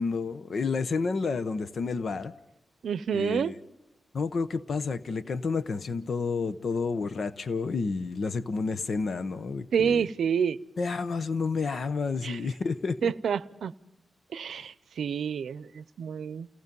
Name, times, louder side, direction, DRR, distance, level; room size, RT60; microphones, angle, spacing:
voice 1, 0.0-2.3 3.1-3.5 4.1-10.0 10.8-13.1 14.5-14.7, left 4 dB, 55° left, 0.8 m, -30 dB
voice 2, 2.8-3.5 9.7-10.6 12.2-12.4 13.0-13.7 14.3-16.5, right 7 dB, 80° right, 0.7 m, -28 dB
28.5 x 18.0 x 5.4 m
wide cardioid pair, 135°, 0 cm